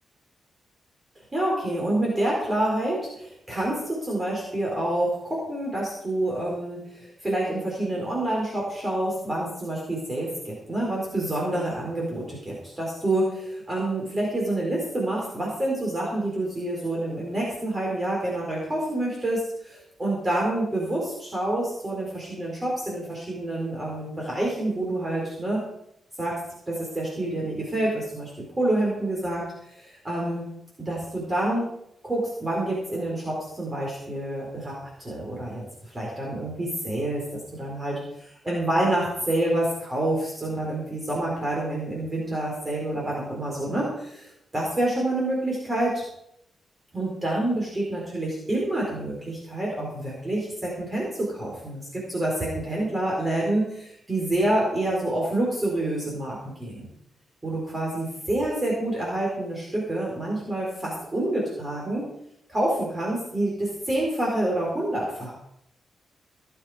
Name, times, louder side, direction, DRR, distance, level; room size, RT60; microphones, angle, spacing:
voice 1, 1.3-25.6 26.2-26.4 26.7-30.5 30.8-31.7 32.0-44.3 44.5-46.0 46.9-56.9 57.4-62.1 62.5-65.3, right 1 dB, 15° right, -3 dB, 4.5 m, -27 dB
18.0 x 9.6 x 5.1 m, 0.74 s
wide cardioid pair, 155°, 0 cm